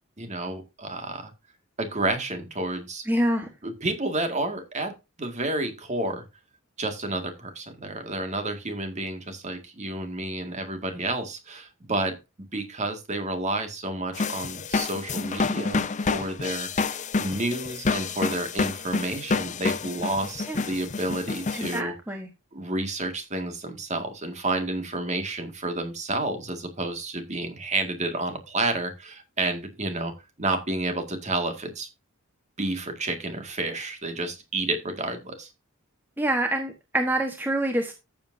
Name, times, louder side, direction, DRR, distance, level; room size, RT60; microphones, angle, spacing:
voice 1, 0.2-1.3 1.8-3.1 3.6-4.9 5.2-6.2 6.8-12.2 12.5-21.9 22.5-31.9 32.6-35.5, right 2 dB, 35° right, 6 dB, 2.0 m, -30 dB
voice 2, 3.1-3.5 20.5-20.6 21.5-22.3 36.2-37.9, right 1 dB, 10° right, 4 dB, 1.2 m, -26 dB
sound 1, 14.1-21.8, left 4 dB, 35° left, 0.6 m, -28 dB
14.0 x 7.7 x 2.7 m, 0.25 s
head